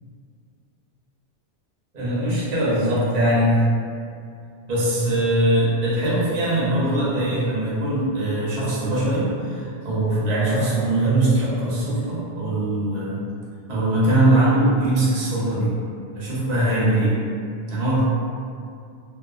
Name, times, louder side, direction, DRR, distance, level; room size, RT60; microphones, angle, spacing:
voice 1, 1.9-3.5 4.7-13.2 13.7-15.7 16.1-17.2 17.7-18.0, right 1 dB, 45° right, -8 dB, 0.7 m, -21 dB
2.6 x 2.4 x 2.3 m, 2.4 s
omnidirectional pair, 1.2 m